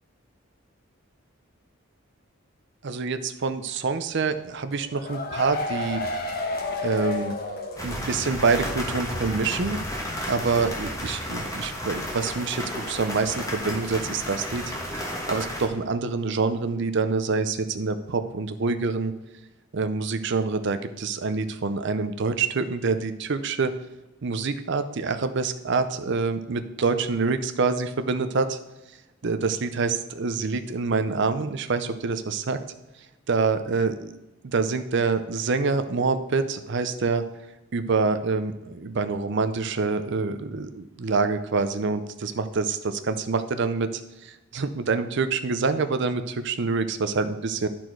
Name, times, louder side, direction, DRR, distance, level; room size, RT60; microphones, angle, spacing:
voice 1, 2.8-6.0 6.8-7.3 7.8-9.8 10.3-14.6 15.3-19.1 19.7-23.7 24.2-28.6 29.2-32.6 33.3-34.1 34.4-37.2 37.7-47.7, right 4 dB, 60° right, 10 dB, 0.6 m, -26 dB
sound 1, 4.7-8.3 8.6-8.7 9.1-9.2, left 2 dB, 50° left, 1.2 m, -31 dB
sound 2, 7.8-15.7, left 1 dB, 15° left, 1.4 m, -32 dB
10.5 x 4.4 x 4.6 m, 0.96 s
head